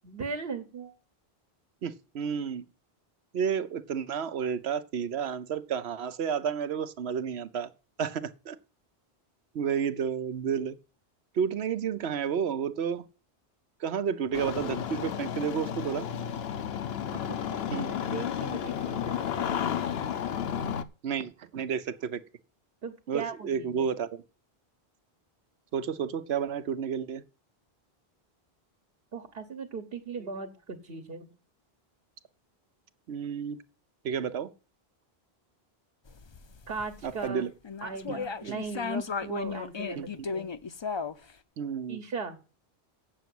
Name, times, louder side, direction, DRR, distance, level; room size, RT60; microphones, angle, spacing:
voice 1, 0.0-0.9 17.3-19.5 22.8-23.9 29.1-31.3 36.7-37.4 37.8-40.5 41.9-42.4, right 4 dB, 65° right, 1.3 m, -38 dB
voice 2, 1.8-2.6 3.3-7.7 8.0-8.6 9.5-10.8 11.3-13.0 13.8-16.1 17.7-17.9 21.0-22.2 23.1-24.2 25.7-27.2 33.1-33.6 34.0-34.5 37.0-37.5 38.1-38.2 40.0-40.1 41.6-42.0, right 7 dB, 85° right, 1.1 m, -31 dB
Engine starting, 14.3-20.8, left 9 dB, 75° left, 0.9 m, -32 dB
sound 1, 36.1-37.3 37.6-41.3, left 5 dB, 35° left, 0.5 m, -35 dB
8.2 x 6.8 x 7.7 m
omnidirectional pair, 1.1 m